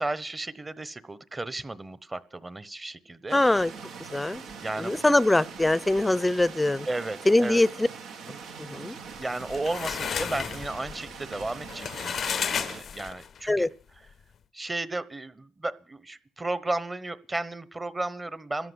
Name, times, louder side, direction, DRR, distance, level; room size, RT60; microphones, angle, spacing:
voice 1, 0.0-3.4 4.6-5.0 6.9-7.6 9.2-13.7 14.5-18.7, right 2 dB, 20° right, 1.1 m, -34 dB
voice 2, 3.3-3.7 4.1-4.4 4.8-6.9 7.3-7.9 8.6-9.0 13.5-13.7, left 2 dB, 10° left, 0.7 m, -23 dB
sound 1, 3.3-12.8, right 6 dB, 85° right, 1.6 m, -43 dB
sound 2, 9.2-13.4, left 7 dB, 55° left, 0.6 m, -33 dB
13.5 x 11.0 x 8.1 m
cardioid pair, 90°, 0 cm